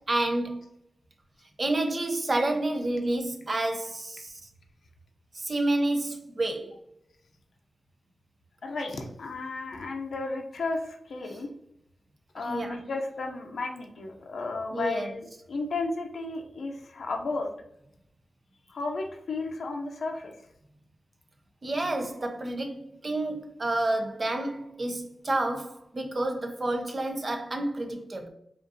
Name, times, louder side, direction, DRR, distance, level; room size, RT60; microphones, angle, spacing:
voice 1, 0.1-0.6 1.6-4.3 5.3-6.7 12.5-12.8 14.7-15.1 21.6-28.3, right 2 dB, 40° right, 0.6 m, -29 dB
voice 2, 8.6-11.5 12.3-17.5 18.7-20.5, left 3 dB, 75° left, 0.6 m, -33 dB
5.0 x 2.5 x 2.7 m
cardioid pair, 75°, 0 cm